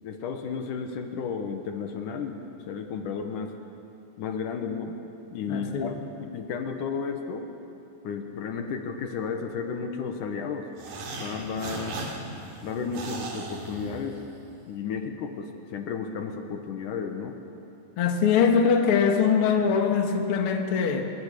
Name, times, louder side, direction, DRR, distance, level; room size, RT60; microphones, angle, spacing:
voice 1, 0.0-3.5 4.2-5.0 5.3-7.5 8.0-10.7 11.2-12.0 12.6-14.2 14.7-17.4, left 5 dB, 70° left, 5 dB, 2.7 m, -33 dB
voice 2, 5.5-5.9 18.0-21.0, left 6 dB, 50° left, 3 dB, 2.2 m, -22 dB
sound 1, 10.8-14.5, right 2 dB, 70° right, 4.3 m, -38 dB
27.0 x 22.5 x 6.7 m, 2.8 s
omnidirectional pair, 3.9 m